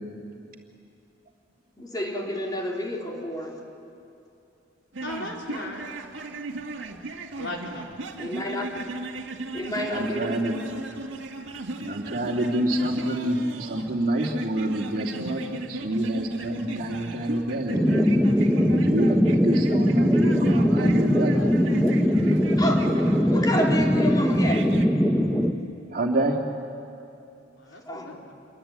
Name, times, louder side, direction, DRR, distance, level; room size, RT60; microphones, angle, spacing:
voice 1, 1.8-3.6 8.2-8.9 9.5-10.6 22.6-22.9 23.3-24.7 27.9-28.2, left 1 dB, 20° left, -1 dB, 3.6 m, -29 dB
sound 1, 4.9-24.9, right 2 dB, 70° right, 2.0 m, -36 dB
voice 2, 5.0-5.9 7.4-7.8 27.6-28.3, left 1 dB, 70° left, 0 dB, 4.1 m, -36 dB
voice 3, 9.8-10.6 11.8-18.1 18.7-21.4 25.9-26.4, right 1 dB, 45° right, 1 dB, 2.7 m, -27 dB
sound 2, 17.7-25.5, equal, ahead, 1.2 m, -21 dB
28.5 x 23.5 x 8.9 m, 2.7 s
head